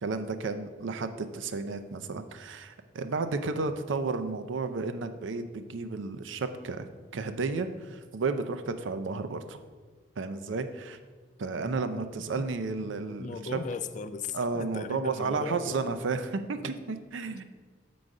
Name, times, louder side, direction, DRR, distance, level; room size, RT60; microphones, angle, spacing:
voice 1, 0.0-9.6 10.2-11.0 11.4-13.6 14.3-17.4, right 4 dB, 80° right, 9 dB, 0.5 m, -32 dB
voice 2, 13.2-15.8, left 5 dB, 40° left, 11 dB, 0.3 m, -37 dB
7.6 x 3.9 x 4.8 m, 1.5 s
head